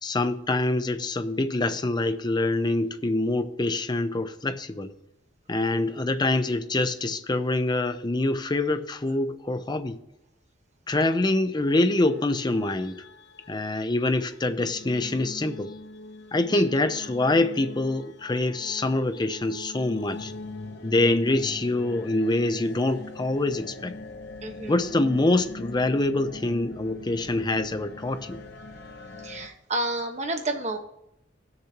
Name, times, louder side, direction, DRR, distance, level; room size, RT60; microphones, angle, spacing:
voice 1, 0.0-4.9 5.5-10.0 10.9-13.0 13.5-15.7 16.3-20.3 20.8-23.9 24.7-28.4, left 2 dB, 25° left, 9 dB, 0.6 m, -25 dB
sound 1, 11.6-29.5, left 2 dB, 60° left, 0.8 m, -42 dB
voice 2, 24.4-24.8 29.2-30.8, right 2 dB, 40° right, 4 dB, 1.3 m, -31 dB
17.5 x 6.7 x 2.9 m, 0.81 s
head